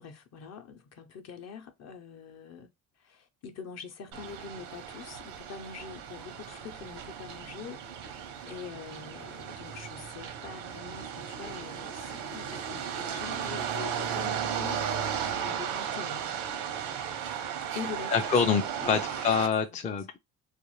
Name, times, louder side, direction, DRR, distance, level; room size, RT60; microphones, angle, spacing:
voice 1, 0.0-2.7 3.0-8.2 8.4-14.8 15.4-16.3 17.7-18.4 18.8-19.3 19.7-19.8, left 6 dB, 50° left, 0.7 m, -44 dB
sound 1, 4.1-19.5, right 8 dB, 85° right, 0.7 m, -35 dB
voice 2, 18.1-20.2, left 6 dB, 25° left, 0.4 m, -26 dB
2.5 x 2.3 x 3.1 m
supercardioid pair, 85°, 32 cm